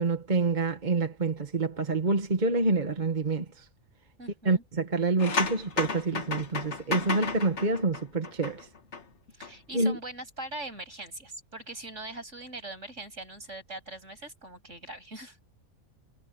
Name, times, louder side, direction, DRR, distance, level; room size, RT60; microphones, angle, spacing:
voice 1, 0.0-3.7 4.4-8.7 9.7-10.0, right 3 dB, 35° right, 1.5 m, -27 dB
voice 2, 4.2-4.6 9.3-15.4, right 2 dB, 55° right, 8.1 m, -41 dB
sound 1, 5.2-9.0 9.3-9.5, left 4 dB, 55° left, 1.9 m, -33 dB
omnidirectional pair, 1.5 m